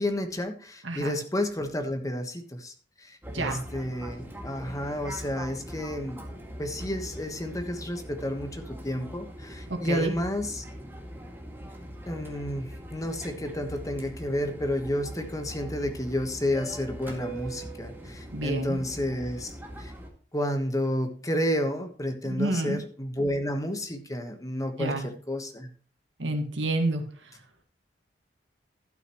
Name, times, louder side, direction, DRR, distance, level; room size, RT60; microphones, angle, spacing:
voice 1, 0.0-6.3 6.6-10.6 12.1-19.9 20.3-25.7, left 1 dB, 20° left, 6 dB, 1.3 m, -31 dB
Fixed-wing aircraft airplane, 3.2-20.1, right 1 dB, 10° right, 2.0 m, -41 dB
voice 2, 9.7-10.1 18.3-18.8 22.2-22.8 24.8-25.1 26.2-27.0, right 2 dB, 90° right, 5 dB, 1.9 m, -29 dB
12.0 x 9.3 x 3.1 m, 0.43 s
head